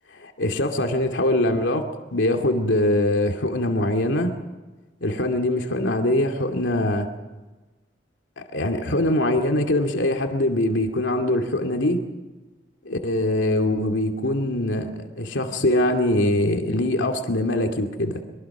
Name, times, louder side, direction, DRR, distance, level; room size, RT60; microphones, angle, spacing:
voice 1, 0.1-4.4 5.0-7.1 8.5-12.0 12.8-18.2, left 1 dB, 90° left, 3 dB, 2.5 m, -23 dB
24.5 x 23.5 x 6.1 m, 1.2 s
head